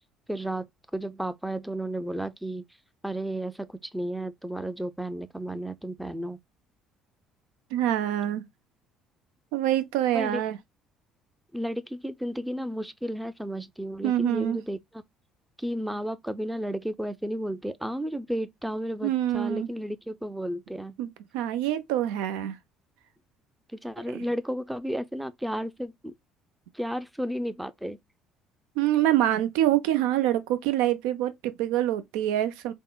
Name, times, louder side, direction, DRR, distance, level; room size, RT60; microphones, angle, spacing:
voice 1, 0.3-0.7 0.9-2.6 3.0-6.4 10.1-10.4 11.5-15.0 15.6-21.0 23.7-26.1 26.7-28.0, equal, 5° right, 0.4 m, -33 dB
voice 2, 7.7-8.4 9.5-10.6 14.0-14.6 19.0-19.7 21.0-21.1 21.3-22.6 24.1-24.2 28.8-32.7, right 12 dB, 80° right, 0.4 m, -25 dB
3.5 x 2.0 x 2.2 m
supercardioid pair, 70°, 0 cm